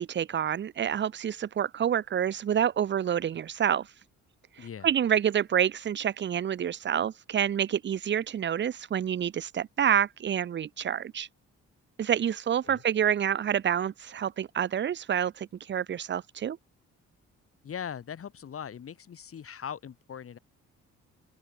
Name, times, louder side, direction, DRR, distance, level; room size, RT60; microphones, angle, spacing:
voice 1, 0.0-3.9 4.6-11.3 12.0-16.6, right 9 dB, 40° right, 0.6 m, -28 dB
voice 2, 4.6-4.9 12.6-12.8 17.6-20.4, left 8 dB, 50° left, 2.0 m, -40 dB
open air
cardioid pair, 90°, 30 cm